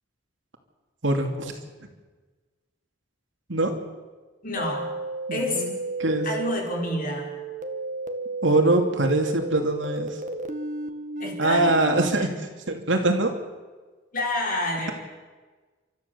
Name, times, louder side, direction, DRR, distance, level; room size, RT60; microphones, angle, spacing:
voice 1, 1.0-1.5 3.5-3.8 5.3-6.3 8.4-10.2 11.4-12.3 12.7-13.4, right 2 dB, 80° right, 3 dB, 2.7 m, -23 dB
voice 2, 4.4-5.0 5.3-5.7 6.2-7.3 11.2-12.3 14.1-14.9, left 1 dB, 50° left, 0 dB, 4.8 m, -29 dB
sound 1, 4.6-12.1, right 3 dB, 40° right, 1.6 m, -33 dB
30.0 x 13.5 x 7.1 m, 1.3 s
head